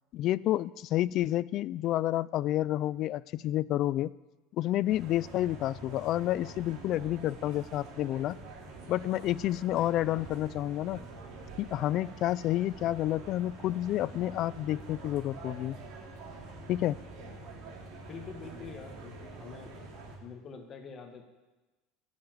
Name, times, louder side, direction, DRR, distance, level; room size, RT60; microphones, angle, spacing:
voice 1, 0.1-4.1 4.6-8.4 8.9-11.0 11.6-15.8 16.7-17.0, left 14 dB, 45° left, 20 dB, 0.3 m, -29 dB
sound 1, 4.9-20.2, right 3 dB, 55° right, 2.9 m, -46 dB
voice 2, 18.1-19.7 20.2-21.2, left 5 dB, 30° left, 5 dB, 1.6 m, -45 dB
13.5 x 7.4 x 7.8 m, 1.1 s
cardioid pair, 150°, 0 cm